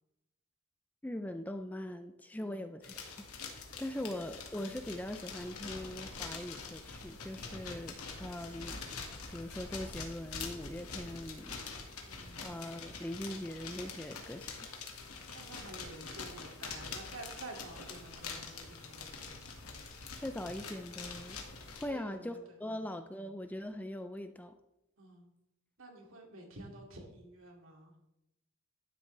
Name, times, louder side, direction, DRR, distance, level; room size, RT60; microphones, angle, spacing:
voice 1, 1.0-3.0 3.5-8.8 9.3-11.6 12.4-14.6 20.2-21.4 21.7-24.5, left 1 dB, 5° left, 8 dB, 0.4 m, -41 dB
voice 2, 2.4-2.7 4.0-4.2 7.6-7.9 12.0-12.5 15.3-19.1 21.9-22.9 25.0-25.3 25.8-27.9, right 2 dB, 65° right, 1 dB, 2.4 m, -50 dB
sound 1, 2.8-21.9, left 4 dB, 90° left, 1.9 m, -45 dB
12.0 x 9.9 x 3.3 m, 0.88 s
head